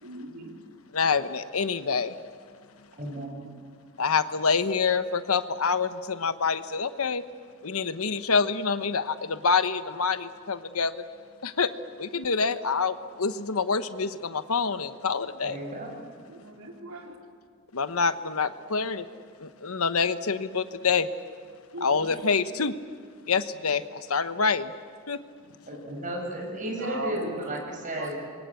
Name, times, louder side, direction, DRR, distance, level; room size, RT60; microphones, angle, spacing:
voice 1, 0.0-0.6 3.0-3.5 12.1-12.3 16.3-17.2 21.7-22.2 26.7-27.6 28.0-28.1, right 2 dB, 80° right, 1 dB, 3.7 m, -39 dB
voice 2, 0.9-2.2 4.0-7.2 7.6-11.0 11.4-11.7 12.0-15.6 17.7-19.1 19.4-21.1 21.8-22.8 23.3-24.7 25.1-25.2, left 5 dB, 80° left, 11 dB, 1.1 m, -26 dB
voice 3, 2.9-3.3 15.4-15.9 25.7-28.1, right 1 dB, 40° right, 1 dB, 6.4 m, -33 dB
27.5 x 23.0 x 8.4 m, 2.1 s
head